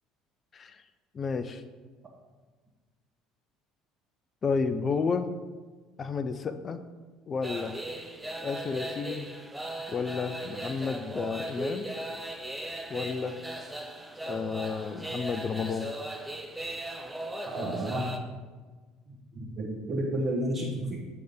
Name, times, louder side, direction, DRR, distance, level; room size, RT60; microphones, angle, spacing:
voice 1, 1.1-1.6 4.4-5.3 6.0-6.8 7.3-7.7 8.4-9.3 9.9-11.9 12.9-13.4 14.3-15.9, left 5 dB, 35° left, 11 dB, 0.4 m, -31 dB
sound 1, 7.4-18.2, right 1 dB, 10° right, 0.6 m, -38 dB
voice 2, 17.4-18.1 19.3-21.0, right 1 dB, 35° right, -7 dB, 1.3 m, -31 dB
7.6 x 3.5 x 5.2 m, 1.4 s
figure-of-eight pair, 60°, 0 cm